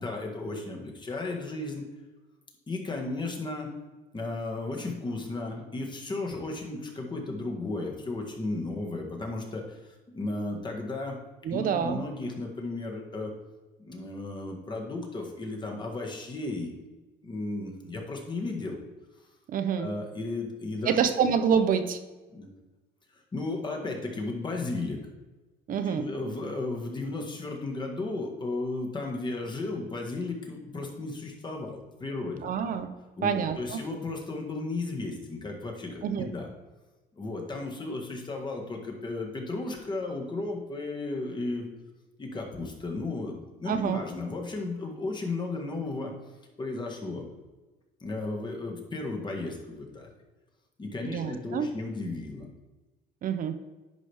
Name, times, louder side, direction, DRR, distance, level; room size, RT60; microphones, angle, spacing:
voice 1, 0.0-1.8 2.7-3.7 4.1-11.2 11.5-13.3 13.8-16.7 17.2-18.8 19.8-21.0 22.3-22.5 23.1-25.0 25.8-32.5 33.2-36.5 37.2-41.7 42.2-46.1 46.6-47.3 48.0-50.1 50.8-52.5, left 2 dB, 25° left, 1 dB, 1.7 m, -34 dB
voice 2, 11.4-12.0 19.5-19.9 20.9-22.0 25.7-26.0 32.4-32.9 33.2-33.8 36.0-36.3 43.7-44.0 51.1-51.7 53.2-53.5, right 7 dB, 55° right, 9 dB, 0.7 m, -27 dB
10.5 x 5.1 x 3.5 m, 1.2 s
cardioid pair, 110°, 17 cm